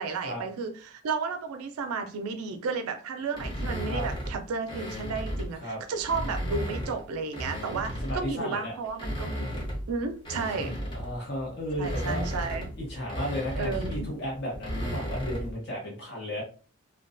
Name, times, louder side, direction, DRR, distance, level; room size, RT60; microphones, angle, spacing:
voice 1, 0.0-10.8 11.8-12.7 13.6-14.1, right 4 dB, 85° right, 0.4 m, -33 dB
sound 1, 3.3-5.6 6.0-8.4 8.8-15.6, equal, 20° left, 0.6 m, -35 dB
voice 2, 8.0-8.7 10.6-12.2 12.8-16.4, equal, 50° left, 0.9 m, -34 dB
2.3 x 2.2 x 2.5 m
head